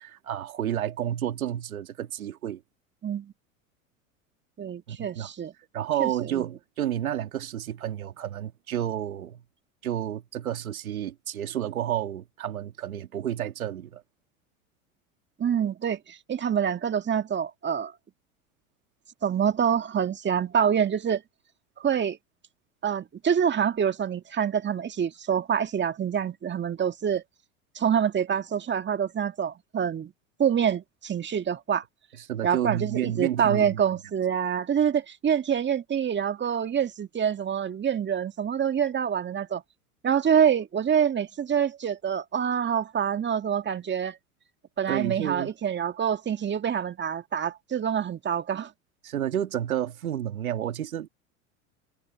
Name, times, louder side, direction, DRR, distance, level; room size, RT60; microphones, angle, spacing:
voice 1, 0.0-2.6 4.9-5.3 5.7-9.4 9.8-14.0 32.2-33.8 44.9-45.5 49.0-51.1, right 11 dB, 85° right, 2.4 m, -30 dB
voice 2, 3.0-3.3 4.6-5.5 6.0-6.4 15.4-17.9 19.2-21.2 21.8-22.2 22.8-27.2 27.8-30.1 30.4-31.8 32.4-39.6 40.0-44.2 44.8-48.7, right 8 dB, 25° right, 2.0 m, -26 dB
hypercardioid pair, 90°, 41 cm